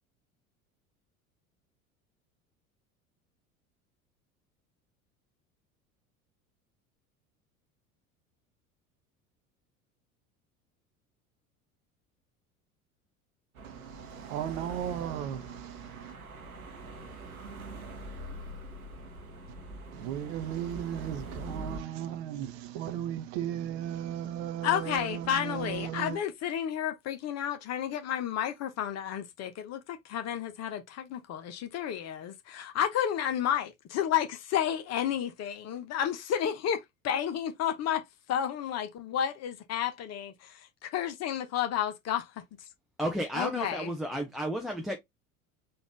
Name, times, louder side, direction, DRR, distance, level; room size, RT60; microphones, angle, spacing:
sound 1, 13.5-21.8, right 2 dB, 80° right, 0.9 m, -43 dB
voice 1, 13.6-16.2 19.9-26.2, right 10 dB, 50° right, 0.7 m, -36 dB
voice 2, 24.6-42.4 43.3-43.9, left 10 dB, 35° left, 0.9 m, -31 dB
voice 3, 43.0-45.0, equal, ahead, 0.5 m, -32 dB
4.1 x 2.4 x 3.3 m
figure-of-eight pair, 70°, 42 cm